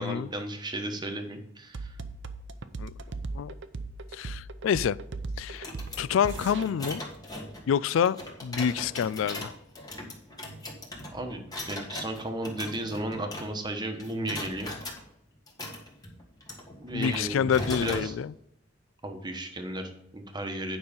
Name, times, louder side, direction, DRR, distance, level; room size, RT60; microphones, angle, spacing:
voice 1, 0.0-2.0 11.1-14.7 16.8-17.5 17.8-18.2 19.0-20.8, right 1 dB, 20° right, 5 dB, 1.1 m, -34 dB
sound 1, 1.7-6.7, right 3 dB, 65° right, 0.6 m, -37 dB
voice 2, 4.1-5.0 5.4-5.7 6.0-7.0 7.7-8.2 8.4-9.5 16.9-18.3, left 8 dB, 80° left, 19 dB, 0.3 m, -27 dB
sound 2, 5.5-13.7 14.0-15.0 15.5-18.1, left 1 dB, 20° left, 1.6 m, -39 dB
9.5 x 5.5 x 5.1 m, 0.76 s
head